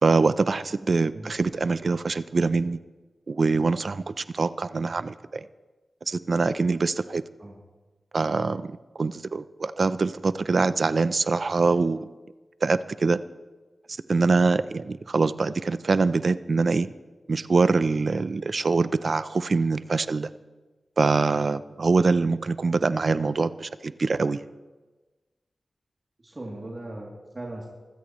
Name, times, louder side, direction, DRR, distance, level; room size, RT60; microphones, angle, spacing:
voice 1, 0.0-2.8 3.3-5.4 6.1-7.2 8.1-12.1 12.6-13.2 13.9-16.9 17.3-20.3 21.0-24.4, right 4 dB, 60° right, 14 dB, 0.5 m, -24 dB
voice 2, 26.2-27.7, right 1 dB, 40° right, -3 dB, 2.9 m, -38 dB
24.0 x 15.5 x 3.1 m, 1.2 s
cardioid pair, 55°, 0 cm